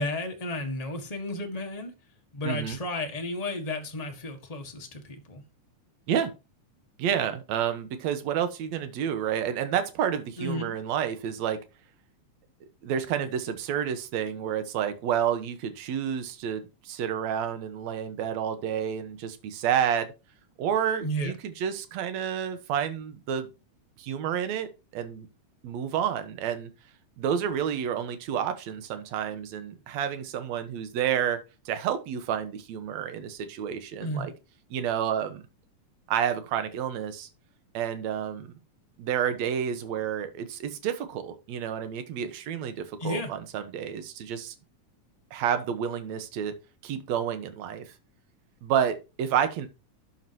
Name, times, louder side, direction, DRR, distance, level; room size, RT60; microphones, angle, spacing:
voice 1, 0.0-1.9 2.3-5.4 10.4-10.7 21.0-21.3 34.0-34.3 43.0-43.3, left 1 dB, 60° left, 0.4 m, -32 dB
voice 2, 2.4-2.8 6.1-6.3 7.0-11.6 12.8-20.1 20.6-23.5 24.0-25.3 25.6-26.7 27.2-31.4 31.7-34.3 34.7-35.4 36.1-37.3 37.7-38.5 39.0-44.6 45.3-46.5 46.8-47.9 48.6-49.7, right 9 dB, 65° right, 2.3 m, -30 dB
11.5 x 7.7 x 2.9 m
omnidirectional pair, 3.6 m